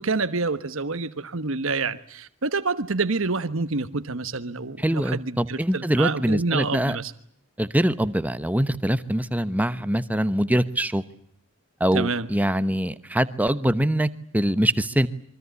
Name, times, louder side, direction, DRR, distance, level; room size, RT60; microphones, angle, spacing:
voice 1, 0.0-7.1 11.9-12.3, right 3 dB, 65° right, 1.2 m, -27 dB
voice 2, 4.8-7.0 7.6-11.0 11.8-15.1, right 1 dB, 5° right, 1.0 m, -23 dB
25.5 x 23.5 x 8.2 m
head